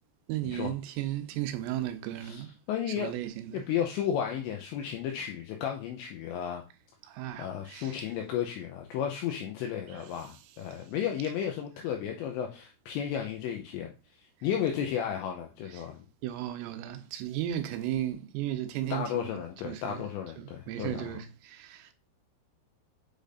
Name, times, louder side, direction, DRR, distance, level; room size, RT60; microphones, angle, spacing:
voice 1, 0.3-2.5 3.0-3.6 7.0-8.0 15.7-15.9 16.2-19.3 19.6-20.0 20.4-21.9, right 13 dB, 90° right, 3.4 m, -35 dB
voice 2, 2.7-3.1 3.5-6.6 7.4-13.9 14.2-16.0 18.9-21.2, left 9 dB, 90° left, 2.5 m, -33 dB
8.3 x 5.0 x 2.6 m
omnidirectional pair, 5.8 m